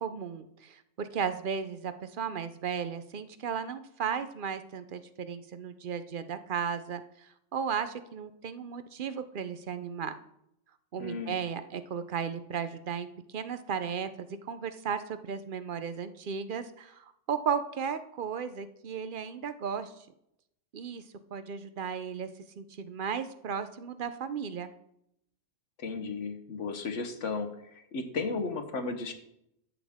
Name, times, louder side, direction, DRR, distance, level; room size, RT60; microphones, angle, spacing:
voice 1, 0.0-10.1 10.9-13.1 13.3-14.1 14.4-19.9 20.7-21.0 21.3-22.3 22.6-24.7, right 7 dB, 50° right, 11 dB, 0.7 m, -35 dB
voice 2, 11.0-11.4 25.8-29.1, left 4 dB, 65° left, 6 dB, 1.3 m, -34 dB
12.5 x 8.2 x 3.6 m, 0.78 s
omnidirectional pair, 1.3 m